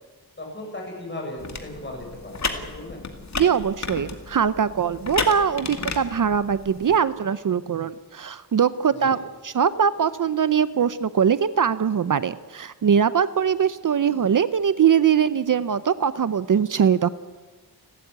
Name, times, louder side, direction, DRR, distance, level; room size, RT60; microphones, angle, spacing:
voice 1, 0.4-3.1 8.9-9.2, left 1 dB, 30° left, 0 dB, 7.5 m, -37 dB
sound 1, 1.4-7.0, left 4 dB, 45° left, 2.3 m, -33 dB
voice 2, 3.4-9.2 9.4-17.1, right 7 dB, 55° right, 14 dB, 0.7 m, -22 dB
29.5 x 13.0 x 9.4 m, 1.4 s
wide cardioid pair, 150°, 39 cm